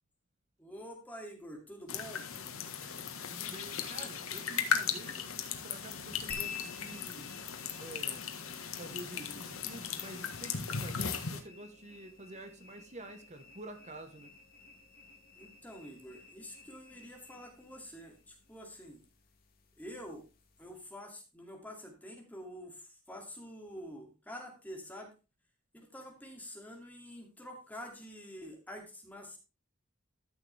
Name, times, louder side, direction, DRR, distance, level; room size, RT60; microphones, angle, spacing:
voice 1, 0.6-2.3 9.3-9.5 15.4-19.0 19.8-20.2 20.6-25.1 25.7-29.4, equal, 10° left, 2.4 m, -47 dB
sound 1, 1.9-11.4, left 7 dB, 85° left, 1.6 m, -37 dB
voice 2, 3.3-7.3 7.8-8.3 8.7-14.3, right 1 dB, 35° right, 1.1 m, -48 dB
sound 2, 6.3-20.9, left 6 dB, 45° left, 2.1 m, -52 dB
13.0 x 6.7 x 3.4 m
head